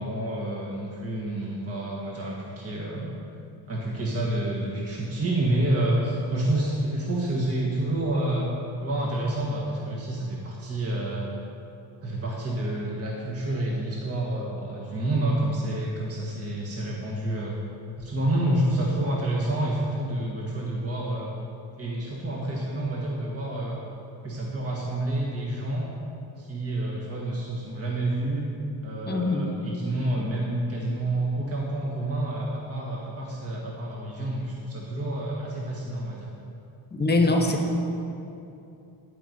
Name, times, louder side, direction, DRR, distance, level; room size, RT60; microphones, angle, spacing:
voice 1, 0.0-3.1 3.7-8.5 8.8-11.3 12.0-17.6 18.0-21.3 21.8-23.8 24.2-25.9 26.4-28.5 28.8-36.3 37.1-37.5, right 1 dB, 35° right, -4 dB, 1.6 m, -28 dB
voice 2, 29.1-29.5 36.9-37.6, left 2 dB, 25° left, 2 dB, 1.3 m, -23 dB
12.5 x 5.4 x 7.6 m, 2.7 s
cardioid pair, 120°, 44 cm